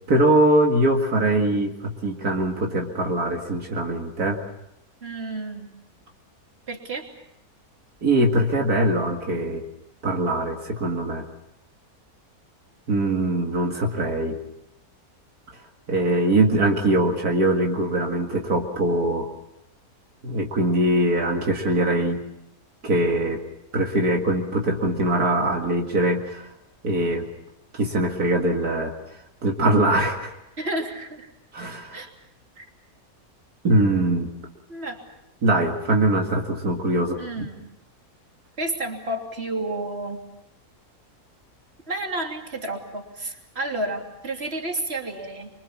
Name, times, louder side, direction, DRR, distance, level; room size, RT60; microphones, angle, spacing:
voice 1, 0.1-4.4 8.0-9.6 10.0-11.2 12.9-14.4 15.9-19.3 20.2-22.2 22.8-23.4 23.7-26.5 26.8-27.3 27.7-30.3 31.5-32.1 33.6-34.3 35.4-37.2, right 1 dB, 75° right, 1 dB, 2.5 m, -22 dB
voice 2, 5.0-5.7 6.7-7.1 30.6-31.3 31.9-32.1 32.6-32.7 34.7-35.0 37.1-37.7 38.6-40.2 41.9-45.5, right 2 dB, 40° right, 2 dB, 3.4 m, -31 dB
25.0 x 25.0 x 7.2 m, 0.85 s
omnidirectional pair, 1.6 m